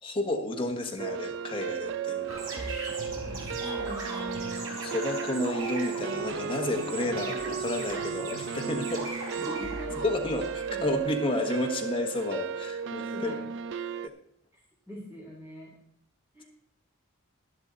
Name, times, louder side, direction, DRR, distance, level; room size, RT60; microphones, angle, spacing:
voice 1, 0.0-2.3 4.6-9.1 10.0-13.4, left 1 dB, 25° left, 2 dB, 1.3 m, -31 dB
sound 1, 1.0-14.1, right 7 dB, 60° right, 0.4 m, -35 dB
sound 2, 2.3-11.0, right 2 dB, 75° right, 4.3 m, -39 dB
voice 2, 3.2-4.7 9.4-10.1 10.7-11.1 13.0-13.4 14.9-15.7 16.3-16.4, equal, 10° right, -5 dB, 3.4 m, -43 dB
12.5 x 11.5 x 4.1 m, 0.68 s
head